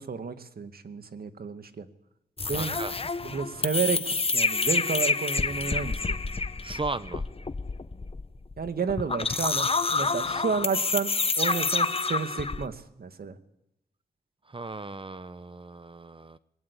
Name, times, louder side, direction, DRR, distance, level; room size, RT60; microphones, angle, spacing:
voice 1, 0.0-1.9 2.5-2.7 3.2-6.2 8.6-13.4, right 5 dB, 60° right, 9 dB, 2.3 m, -31 dB
sound 1, 2.4-12.7, left 4 dB, 35° left, 1.1 m, -28 dB
voice 2, 2.5-2.9 6.6-7.3 14.4-16.4, right 3 dB, 30° right, 14 dB, 1.1 m, -36 dB
22.0 x 19.5 x 8.6 m, 0.83 s
supercardioid pair, 45°, 17 cm